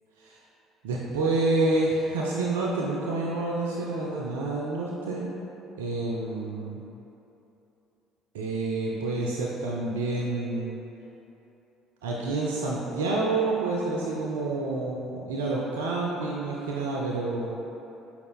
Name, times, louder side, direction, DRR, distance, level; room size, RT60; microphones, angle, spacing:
voice 1, 0.8-5.3 5.8-6.8 8.3-10.8 12.0-17.5, right 2 dB, 70° right, -4 dB, 0.3 m, -28 dB
4.9 x 2.3 x 3.5 m, 3.0 s
figure-of-eight pair, 55°, 0 cm